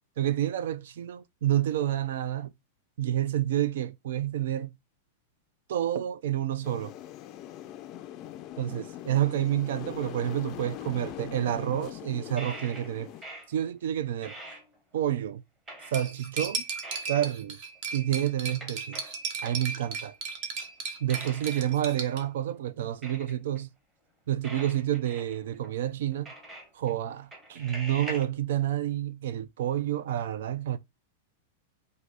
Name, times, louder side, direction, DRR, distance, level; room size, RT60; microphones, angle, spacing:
voice 1, 0.2-2.5 3.0-4.7 5.7-6.9 8.6-13.1 13.5-14.3 14.9-15.4 15.9-16.6 17.1-17.6 17.9-19.0 19.4-20.1 21.0-23.7 24.3-26.3 26.7-30.8, right 11 dB, 70° right, 0.5 m, -29 dB
sound 1, 6.6-13.2, left 12 dB, 30° left, 0.4 m, -41 dB
sound 2, 12.4-13.7 14.0-15.1 15.7-16.3 16.8-17.3 17.8-17.9 18.5-19.6 20.6-20.7 21.1-21.7 22.1-22.2 23.0-23.6 24.4-25.7 26.1-26.9 27.3-28.2, right 1 dB, 15° right, 1.1 m, -44 dB
Cutlery silverware, 15.9-22.2, right 5 dB, 45° right, 1.0 m, -36 dB
4.0 x 2.7 x 4.6 m
supercardioid pair, 160°, 0 cm